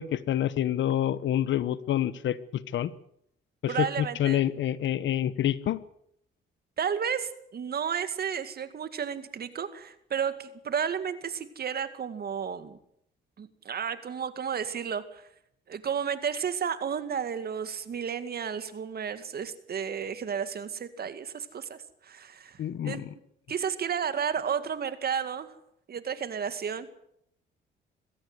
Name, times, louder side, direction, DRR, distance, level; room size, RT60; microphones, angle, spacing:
voice 1, 0.0-2.9 3.6-5.8 22.6-23.1, left 11 dB, 70° left, 17 dB, 1.1 m, -27 dB
voice 2, 3.7-4.4 6.8-12.8 13.4-15.2 15.7-22.6 22.8-23.0 23.5-25.5 25.9-26.9, right 7 dB, 50° right, 11 dB, 2.2 m, -32 dB
22.0 x 16.0 x 8.1 m, 0.73 s
cardioid pair, 90°, 20 cm